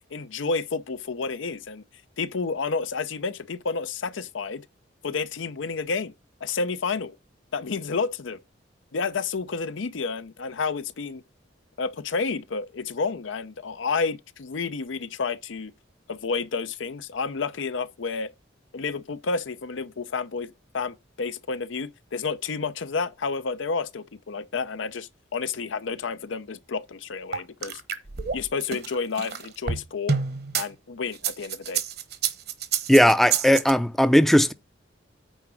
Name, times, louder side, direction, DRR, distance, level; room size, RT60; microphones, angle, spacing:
voice 1, 0.1-1.8 2.2-4.6 5.0-6.1 6.4-7.2 7.5-8.4 8.9-11.2 11.8-15.7 16.1-18.3 18.7-27.8 28.3-30.2 30.6-31.8, left 4 dB, 85° left, 0.6 m, -30 dB
sound 1, 27.3-30.7 31.1-33.7, right 7 dB, 55° right, 1.1 m, -28 dB
voice 2, 32.9-34.5, equal, ahead, 0.5 m, -17 dB
9.3 x 3.8 x 6.2 m
head